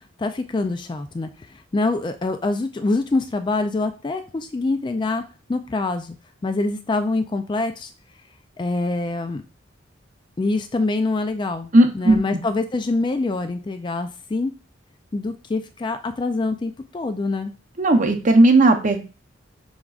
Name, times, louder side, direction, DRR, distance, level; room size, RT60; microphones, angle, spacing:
voice 1, 0.2-5.2 5.5-6.2 6.4-7.9 8.6-9.4 10.4-11.7 11.9-14.5 15.1-17.5, left 3 dB, 25° left, 8 dB, 0.3 m, -25 dB
voice 2, 11.7-12.4 17.8-19.0, right 2 dB, 40° right, 5 dB, 0.7 m, -16 dB
6.1 x 3.5 x 2.4 m, 0.34 s
head